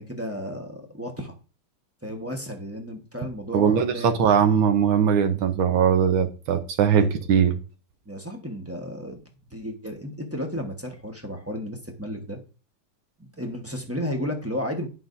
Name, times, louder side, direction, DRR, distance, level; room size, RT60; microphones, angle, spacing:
voice 1, 0.0-1.3 2.0-4.2 7.0-7.1 8.1-9.2 9.5-12.4 13.4-14.9, equal, 10° right, 2 dB, 0.7 m, -33 dB
voice 2, 3.5-7.5, right 7 dB, 75° right, 7 dB, 1.6 m, -20 dB
11.0 x 5.7 x 2.6 m, 0.34 s
omnidirectional pair, 2.2 m